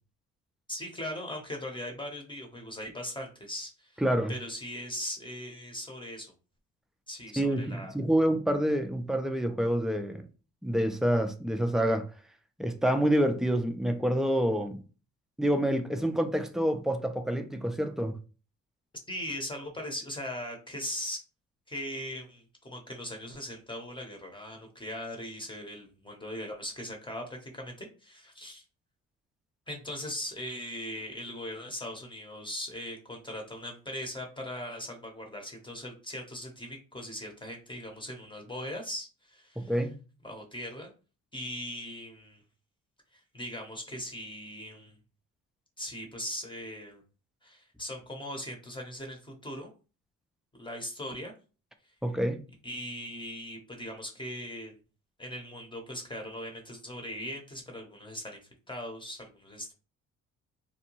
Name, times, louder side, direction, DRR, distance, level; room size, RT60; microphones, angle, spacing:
voice 1, 0.7-4.0 4.3-6.3 7.1-7.9 19.1-21.2 21.7-28.6 29.7-39.8 40.2-40.9 41.3-42.4 43.1-45.0 45.8-47.0 47.4-49.7 50.6-51.3 52.6-54.8 55.2-58.4 58.7-59.7, left 1 dB, 15° left, 0.7 m, -39 dB
voice 2, 4.0-4.3 7.4-10.3 10.6-12.1 12.6-14.8 15.4-18.2 39.6-39.9 52.0-52.4, right 1 dB, ahead, 0.3 m, -27 dB
2.7 x 2.1 x 2.9 m
cardioid pair, 90°, 30 cm